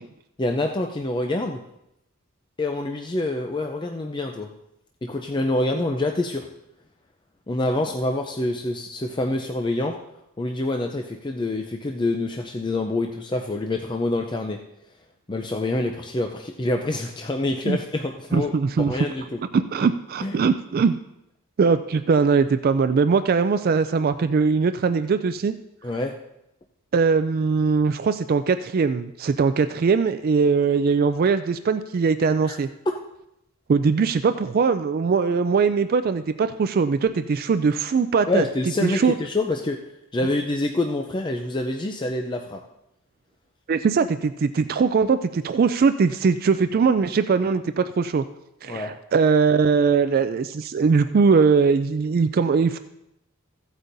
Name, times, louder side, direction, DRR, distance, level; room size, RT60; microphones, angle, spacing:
voice 1, 0.4-1.6 2.6-4.5 5.0-6.5 7.5-10.0 10.4-14.6 15.3-18.5 18.8-19.4 20.2-20.4 25.8-26.1 32.5-32.6 32.9-33.0 38.3-39.8 40.1-42.6 48.7-48.9, left 2 dB, 20° left, 3 dB, 0.5 m, -26 dB
voice 2, 18.3-19.1 19.5-21.0 21.6-25.5 26.9-32.7 33.7-38.4 38.8-39.1 43.7-48.2 48.6-52.8, right 5 dB, 45° right, 10 dB, 0.3 m, -21 dB
15.5 x 8.1 x 2.6 m, 0.83 s
head